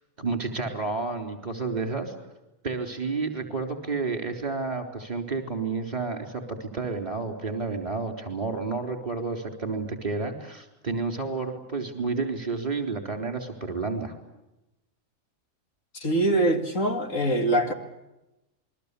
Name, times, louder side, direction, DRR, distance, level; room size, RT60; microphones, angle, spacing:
voice 1, 0.2-2.1 2.6-14.2, right 4 dB, 30° right, 5 dB, 4.0 m, -30 dB
voice 2, 15.9-17.7, right 1 dB, 65° left, 5 dB, 2.9 m, -23 dB
28.0 x 22.5 x 8.4 m, 0.95 s
omnidirectional pair, 1.4 m